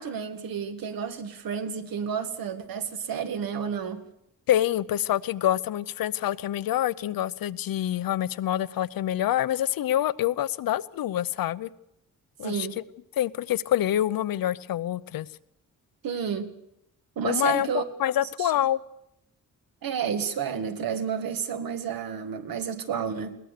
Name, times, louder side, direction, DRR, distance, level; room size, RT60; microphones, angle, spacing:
voice 1, 0.0-4.0 12.4-12.8 16.0-16.5 17.2-17.8 18.4-18.5 19.8-23.3, right 7 dB, 80° right, 1.8 m, -31 dB
voice 2, 4.5-11.7 12.4-12.8 13.2-15.3 17.2-18.8, left 12 dB, 80° left, 0.7 m, -26 dB
21.5 x 18.0 x 6.7 m
wide cardioid pair, 160°, 35 cm